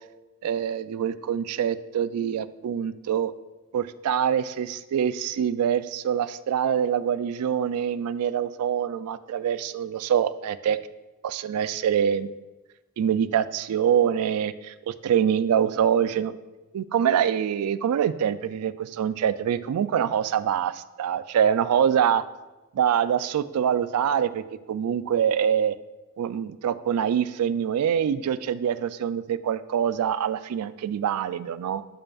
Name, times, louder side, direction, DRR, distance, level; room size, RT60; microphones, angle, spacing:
voice 1, 0.4-3.3 3.7-10.8 11.2-12.3 13.0-16.3 16.7-22.2 22.7-25.8 26.2-31.8, right 8 dB, 80° right, 15 dB, 0.3 m, -25 dB
8.9 x 5.0 x 2.4 m, 1.1 s
head